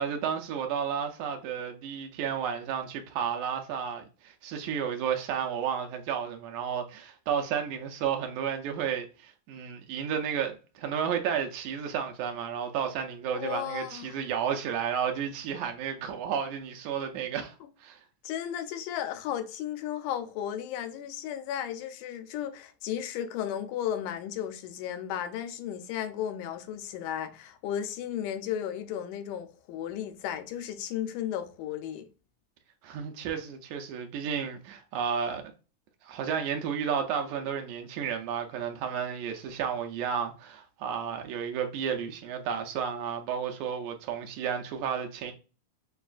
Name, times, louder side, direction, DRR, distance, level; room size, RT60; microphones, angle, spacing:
voice 1, 0.0-17.6 17.8-18.0 32.8-35.5 36.0-45.3, right 7 dB, 80° right, 1.9 m, -32 dB
voice 2, 13.3-14.1 18.2-32.1, left 10 dB, 85° left, 2.1 m, -34 dB
6.8 x 2.4 x 2.4 m
omnidirectional pair, 3.6 m